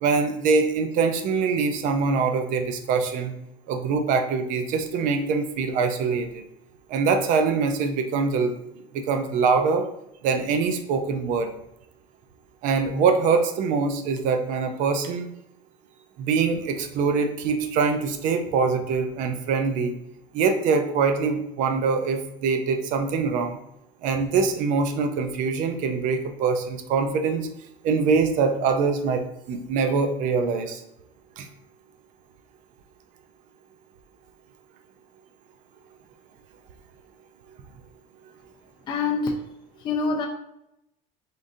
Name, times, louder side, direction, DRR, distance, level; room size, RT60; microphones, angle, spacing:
voice 1, 0.0-3.3 3.7-6.4 6.9-8.5 8.9-9.9 10.2-11.5 12.6-15.3 16.2-19.9 20.3-23.6 24.0-27.5 27.8-30.8 31.4-31.5, right 5 dB, 50° right, 7 dB, 0.5 m, -23 dB
voice 2, 38.9-39.4 39.8-40.3, left 4 dB, 30° left, 1 dB, 0.4 m, -25 dB
3.8 x 3.7 x 2.6 m, 0.84 s
cardioid pair, 150°, 16 cm